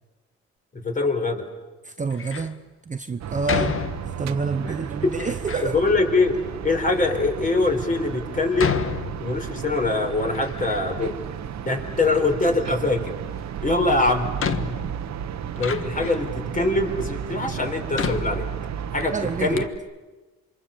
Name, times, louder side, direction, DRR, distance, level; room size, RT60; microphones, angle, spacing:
voice 1, 0.7-1.4 4.6-4.7 5.0-5.1 5.6-6.4 6.6-8.8 9.2-11.2 11.6-13.1 13.6-14.3 15.6-18.5 18.9-19.1 19.4-19.6, left 3 dB, 25° left, 4 dB, 4.4 m, -23 dB
voice 2, 1.8-3.8 4.1-5.8 19.1-19.6, right 4 dB, 25° right, 9 dB, 0.9 m, -28 dB
Door, 2.1-2.6 3.5-4.4 5.1-5.7 6.5-6.6 7.3-7.4 8.6-9.7 10.1-11.1 11.4-12.3 13.6-13.7 14.4-16.4 17.0-17.1 17.9-19.0 19.3-19.4 19.6-19.8, left 6 dB, 45° left, 1.5 m, -31 dB
sound 1, 3.2-19.7, right 9 dB, 65° right, 1.1 m, -33 dB
27.5 x 25.0 x 7.2 m, 1.2 s
cardioid pair, 90°, 30 cm